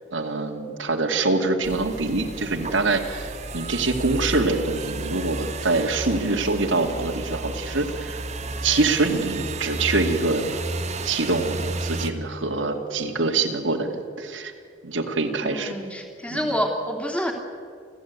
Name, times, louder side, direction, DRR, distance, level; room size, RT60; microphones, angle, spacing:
voice 1, 0.1-8.2 8.6-10.6 11.0-14.5 14.8-15.7 16.3-16.4, right 3 dB, 85° right, 2 dB, 2.3 m, -24 dB
sound 1, 1.6-12.1, right 2 dB, 35° right, 1.5 m, -32 dB
voice 2, 15.4-17.3, equal, 5° left, 2 dB, 3.1 m, -27 dB
29.0 x 14.5 x 9.5 m, 2.3 s
head